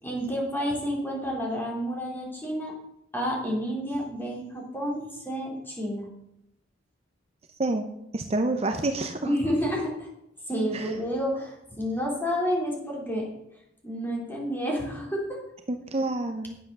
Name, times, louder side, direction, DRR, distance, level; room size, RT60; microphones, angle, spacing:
voice 1, 0.0-2.7 3.1-6.1 9.2-10.1 10.5-13.3 13.8-15.4, equal, 10° left, -2 dB, 3.8 m, -30 dB
voice 2, 8.1-9.3 10.7-11.0 15.7-16.6, right 2 dB, 35° right, 6 dB, 0.7 m, -28 dB
11.0 x 7.7 x 6.7 m, 0.83 s
head